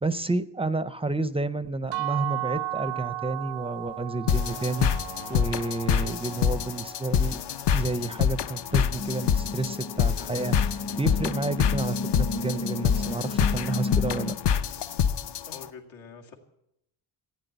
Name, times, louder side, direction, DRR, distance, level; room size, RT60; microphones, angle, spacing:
voice 1, 0.0-4.9 5.3-7.4 7.7-14.3, right 2 dB, 15° right, 14 dB, 0.4 m, -30 dB
sound 1, 1.9-7.7, right 16 dB, 75° right, 0.6 m, -35 dB
sound 2, 4.3-15.6, left 8 dB, 65° left, 0.7 m, -26 dB
sound 3, 9.0-14.3, left 3 dB, 30° left, 0.7 m, -33 dB
voice 2, 15.4-16.3, left 5 dB, 85° left, 1 dB, 2.2 m, -45 dB
15.0 x 9.7 x 8.0 m, 0.79 s
wide cardioid pair, 140°, 45 cm